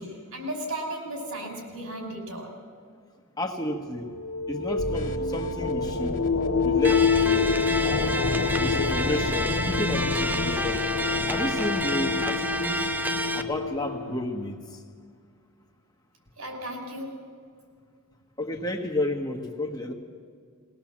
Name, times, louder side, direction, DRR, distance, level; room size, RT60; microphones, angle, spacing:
voice 1, 0.0-2.6 16.4-17.3, right 1 dB, 80° right, 2 dB, 5.6 m, -35 dB
voice 2, 3.4-4.1 4.5-6.2 6.6-7.5 8.6-10.8 11.3-12.9 13.3-14.6 18.4-19.9, left 1 dB, 15° left, 2 dB, 1.4 m, -31 dB
sound 1, 3.8-14.4, left 5 dB, 75° left, 0.9 m, -27 dB
sound 2, 4.8-10.8, left 1 dB, 35° left, 1.9 m, -40 dB
sound 3, 6.8-13.4, right 1 dB, 10° right, 0.6 m, -30 dB
21.5 x 18.5 x 7.4 m, 2.1 s
head